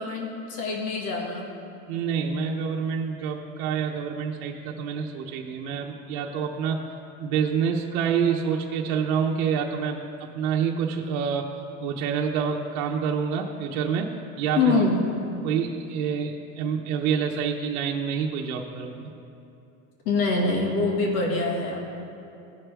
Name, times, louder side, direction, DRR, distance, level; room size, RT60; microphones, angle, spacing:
voice 1, 0.0-1.5 14.6-15.0 20.1-21.8, left 3 dB, 85° left, 0 dB, 2.0 m, -24 dB
voice 2, 1.9-6.8 7.2-11.5 11.8-14.8 15.4-19.1, right 7 dB, 80° right, 0 dB, 0.9 m, -27 dB
17.0 x 6.0 x 3.4 m, 2.8 s
supercardioid pair, 155°, 42 cm